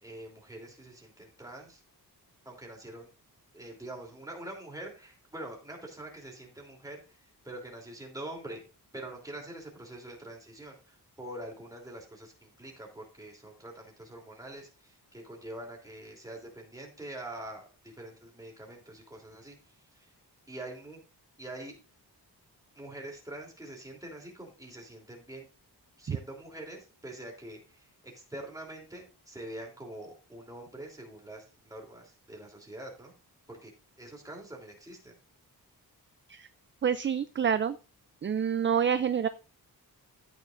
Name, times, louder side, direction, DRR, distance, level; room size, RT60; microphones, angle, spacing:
voice 1, 0.0-1.8 2.4-3.1 3.5-7.2 7.4-8.6 8.9-19.6 19.9-20.1 20.5-21.0 21.4-21.7 22.7-25.5 26.0-33.1 33.5-33.7 34.0-35.1, right 1 dB, 10° right, 0 dB, 3.2 m, -44 dB
voice 2, 36.8-37.8 38.2-39.3, right 7 dB, 30° right, 12 dB, 0.4 m, -27 dB
13.5 x 9.0 x 2.5 m, 0.32 s
wide cardioid pair, 165°, 38 cm